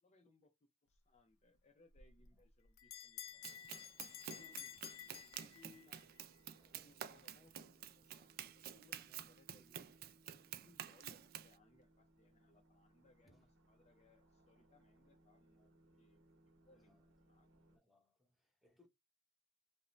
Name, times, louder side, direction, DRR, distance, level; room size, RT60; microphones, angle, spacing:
voice 1, 0.0-3.8 4.3-6.0 6.8-9.8 10.2-10.4 10.6-16.2 16.6-17.0 17.2-17.5, left 3 dB, 35° left, 0.5 m, -70 dB
Bell, 1.9-6.0, left 10 dB, 90° left, 0.4 m, -52 dB
sound 1, 3.2-17.8, right 1 dB, 75° right, 0.9 m, -70 dB
Run, 3.4-11.5, right 10 dB, 50° right, 0.3 m, -50 dB
voice 2, 6.6-7.2 13.3-13.5 16.7-17.1 17.7-18.9, left 2 dB, ahead, 0.8 m, -73 dB
2.5 x 2.0 x 3.0 m
head